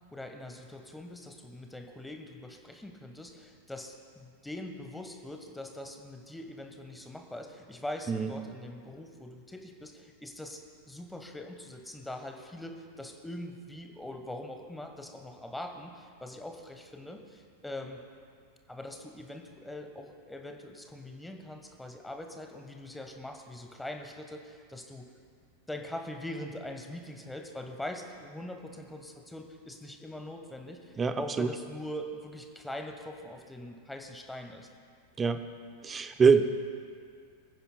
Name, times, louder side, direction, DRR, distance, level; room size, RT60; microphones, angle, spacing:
voice 1, 0.1-10.6 10.9-18.0 18.7-25.1 25.7-34.7, left 1 dB, 5° left, 4 dB, 1.1 m, -42 dB
voice 2, 31.0-31.5 35.2-35.4 35.8-36.4, right 5 dB, 20° right, 9 dB, 0.6 m, -24 dB
23.5 x 9.7 x 2.2 m, 2.2 s
figure-of-eight pair, 90°, 0 cm